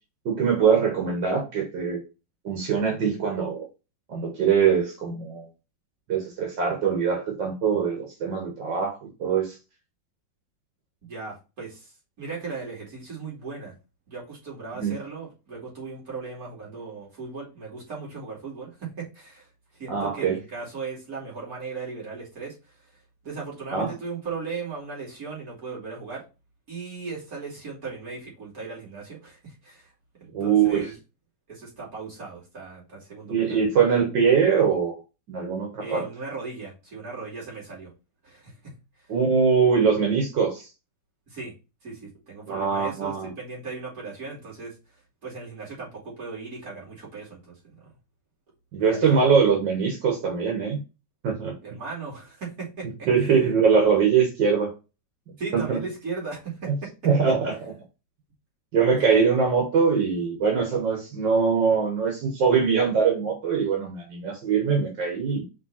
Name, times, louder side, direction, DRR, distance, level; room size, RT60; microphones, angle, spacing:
voice 1, 0.3-2.0 2.4-3.7 4.1-5.5 6.1-9.5 14.8-15.0 19.9-20.4 23.7-23.9 30.3-30.9 33.3-34.9 35.3-36.1 39.1-40.7 42.5-43.3 48.7-50.8 51.2-51.8 52.8-54.7 55.5-55.9 56.6-56.8 57.0-57.7 58.7-65.4, right 6 dB, 85° right, 2.0 m, -22 dB
voice 2, 11.0-13.7 14.1-22.9 23.2-26.2 26.7-29.9 30.2-30.9 31.5-33.7 35.8-37.9 38.2-38.7 41.3-41.5 41.8-44.7 45.2-47.9 48.8-49.3 51.6-53.4 55.4-56.9 59.0-59.3, right 4 dB, 55° right, 3.2 m, -37 dB
5.4 x 3.4 x 5.6 m
omnidirectional pair, 1.9 m